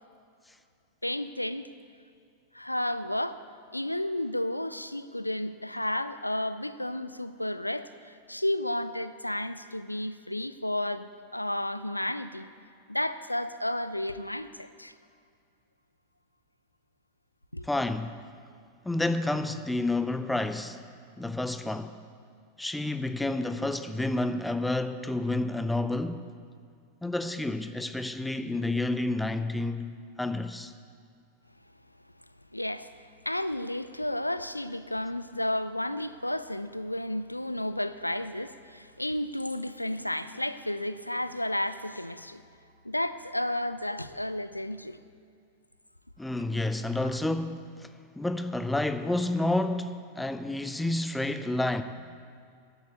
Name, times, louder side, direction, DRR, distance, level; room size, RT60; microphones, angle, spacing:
voice 1, 1.0-1.7 2.5-3.4 3.7-12.5 12.9-14.9 17.5-17.7 32.5-42.4 42.8-45.0 47.0-47.1, left 1 dB, 85° left, 0.4 m, -32 dB
voice 2, 17.6-18.2 18.8-20.8 21.2-22.0 22.6-26.3 27.0-30.7 46.2-47.9 48.2-51.8, left 2 dB, 5° left, 0.5 m, -30 dB
11.0 x 8.0 x 8.3 m
figure-of-eight pair, 90°, 0 cm